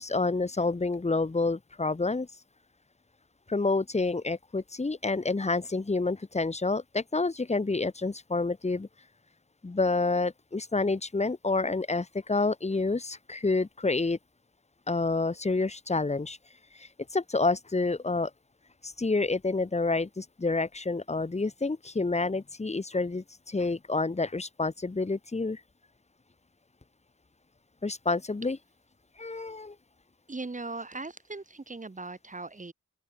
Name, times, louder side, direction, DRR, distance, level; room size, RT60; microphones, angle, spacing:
voice 1, 0.0-2.3 3.5-8.9 9.6-14.2 14.9-16.4 16.7-18.3 18.8-25.6 27.8-28.6 29.2-29.7, left 3 dB, 20° left, 1.5 m, -28 dB
voice 2, 30.3-32.7, right 3 dB, 25° right, 2.9 m, -39 dB
open air
wide cardioid pair, 105°, 31 cm